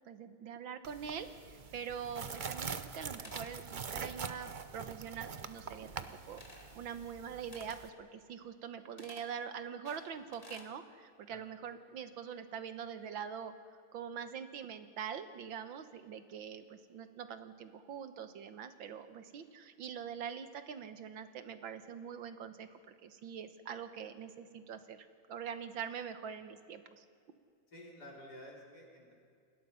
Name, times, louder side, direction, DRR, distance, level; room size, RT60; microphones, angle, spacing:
voice 1, 0.1-6.4 6.8-13.5 13.9-27.1, right 7 dB, 75° right, 10 dB, 1.8 m, -44 dB
sound 1, 0.8-7.9, right 5 dB, 50° right, 0.5 m, -44 dB
sound 2, 2.3-3.0 3.2-3.6 6.3-6.8 7.5-7.8 9.0-9.3 9.8-10.7, left 2 dB, 20° left, 2.2 m, -54 dB
voice 2, 27.7-29.1, left 1 dB, 50° left, -2 dB, 5.0 m, -51 dB
28.5 x 20.5 x 5.7 m, 2.3 s
omnidirectional pair, 2.2 m